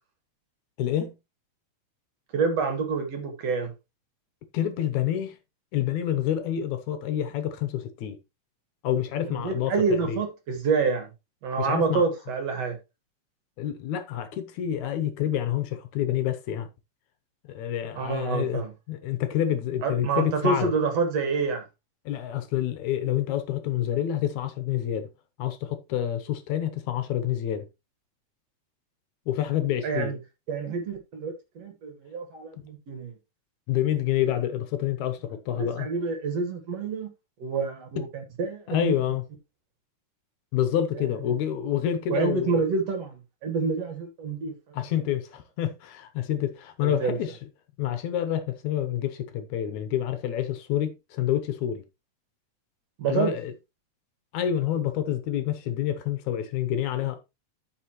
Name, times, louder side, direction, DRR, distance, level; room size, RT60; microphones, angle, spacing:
voice 1, 0.8-1.1 4.5-5.4 5.7-8.2 8.8-10.2 11.6-12.0 13.6-16.7 17.5-18.6 18.9-20.7 22.1-25.1 25.4-27.7 29.3-30.1 33.7-35.9 38.7-39.2 40.5-42.6 44.7-47.4 47.8-51.8 53.1-53.5 54.3-57.2, left 11 dB, 75° left, 2.2 m, -28 dB
voice 2, 2.3-3.7 9.3-11.1 11.4-12.8 18.0-18.7 19.8-21.6 29.8-30.2 30.5-33.1 35.6-37.1 37.4-39.0 41.0-41.1 42.1-44.8 46.8-47.2 53.0-53.3, right 4 dB, 60° right, 2.5 m, -27 dB
13.5 x 5.2 x 3.0 m
omnidirectional pair, 3.5 m